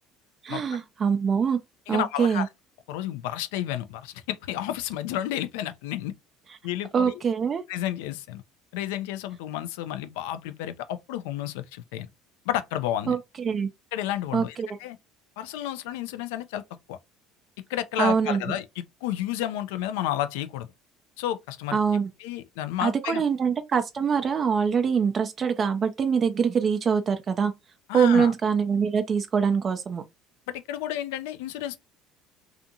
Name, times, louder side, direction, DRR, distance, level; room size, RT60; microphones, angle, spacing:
voice 1, 0.4-1.6 1.9-2.5 6.9-7.6 13.1-13.7 14.3-14.7 18.0-18.4 21.7-22.1 22.8-27.5 27.9-30.0, right 6 dB, 40° right, 0.4 m, -24 dB
voice 2, 1.9-2.5 2.9-6.1 6.6-7.2 7.7-8.4 8.7-12.1 12.5-13.2 13.9-14.6 14.8-15.0 15.4-16.6 16.9-17.0 17.7-20.7 21.2-21.8 22.2-23.2 27.9-28.3 30.5-31.8, left 12 dB, 70° left, 0.3 m, -31 dB
2.5 x 2.5 x 2.7 m
hypercardioid pair, 65°, 0 cm